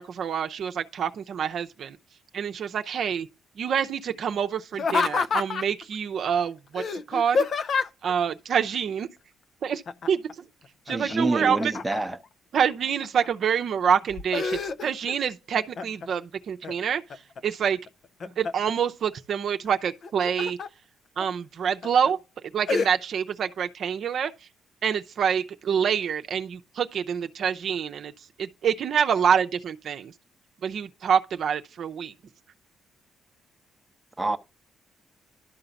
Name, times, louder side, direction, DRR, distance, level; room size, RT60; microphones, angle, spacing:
voice 1, 0.0-2.0 2.3-3.3 3.6-7.5 8.0-9.1 9.6-9.8 10.1-10.5 10.9-11.7 12.5-17.8 18.2-20.6 21.2-22.2 22.5-24.3 24.8-28.1 28.4-30.1 30.6-32.1, right 7 dB, 60° right, 0.6 m, -26 dB
Laughter, 4.7-5.8 6.8-8.1 9.9-10.3 10.6-12.2 12.8-13.5 13.9-15.1 15.5-16.1 16.6-17.4 17.9-18.7 19.9-20.7 21.2-21.3 21.8-22.1 22.7-22.9, left 5 dB, 55° left, 0.6 m, -28 dB
voice 2, 10.9-12.2 34.2-34.4, right 2 dB, 10° right, 0.8 m, -27 dB
11.5 x 3.9 x 7.0 m
cardioid pair, 90°, 0 cm